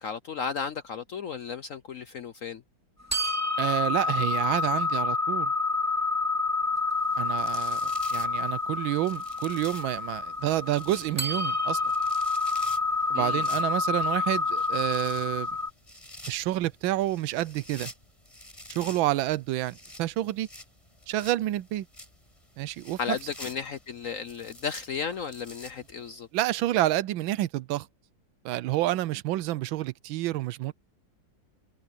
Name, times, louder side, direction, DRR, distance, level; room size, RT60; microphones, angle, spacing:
voice 1, 0.0-2.6 13.1-13.5 23.0-26.3, left 6 dB, 65° left, 0.8 m, -34 dB
sound 1, 3.1-15.7, left 3 dB, 10° right, 2.2 m, -28 dB
voice 2, 3.6-5.5 7.2-11.8 13.1-15.5 16.3-17.9 18.7-20.5 21.1-21.9 22.6-23.2 26.3-27.9 28.4-30.7, right 15 dB, 85° right, 1.4 m, -29 dB
sound 2, 7.0-26.2, left 1 dB, 15° left, 7.4 m, -49 dB
omnidirectional pair, 2.1 m